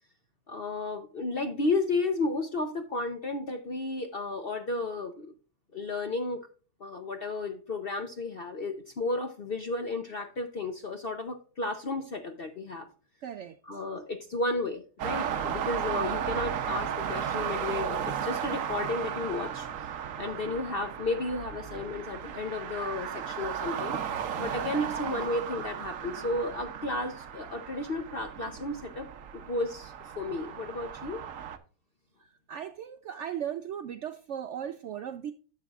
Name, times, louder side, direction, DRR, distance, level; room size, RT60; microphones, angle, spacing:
voice 1, 0.5-5.3 5.7-6.4 6.8-12.9 13.6-19.7 20.2-24.0 24.4-29.1 29.3-31.2, left 2 dB, 55° left, 0.6 m, -33 dB
voice 2, 13.2-13.5 32.5-35.3, right 9 dB, 85° right, 0.6 m, -37 dB
sound 1, 15.0-31.6, right 8 dB, 60° right, 1.0 m, -35 dB
11.5 x 7.5 x 2.4 m
omnidirectional pair, 1.8 m